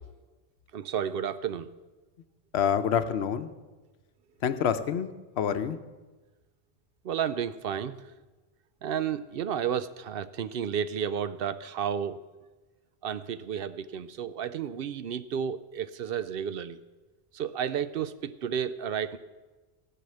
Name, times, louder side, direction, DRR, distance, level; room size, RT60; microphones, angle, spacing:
voice 1, 0.7-1.7 7.0-8.0 8.8-12.2 13.0-16.8 17.3-19.2, right 8 dB, 65° right, 14 dB, 0.7 m, -32 dB
voice 2, 2.5-3.5 4.4-5.1 5.4-5.8, left 8 dB, 85° left, 10 dB, 1.0 m, -27 dB
16.0 x 5.6 x 7.7 m, 1.2 s
omnidirectional pair, 1.1 m